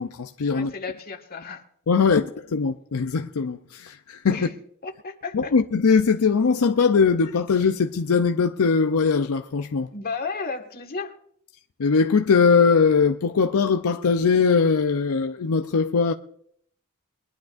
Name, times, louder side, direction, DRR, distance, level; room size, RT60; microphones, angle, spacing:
voice 1, 0.0-0.7 1.9-4.5 5.3-9.9 11.8-16.1, left 5 dB, 75° left, 0.5 m, -21 dB
voice 2, 0.5-1.6 2.1-2.2 4.3-4.5 4.8-5.5 9.9-11.2, left 4 dB, 45° left, 1.7 m, -33 dB
22.5 x 12.0 x 2.5 m
head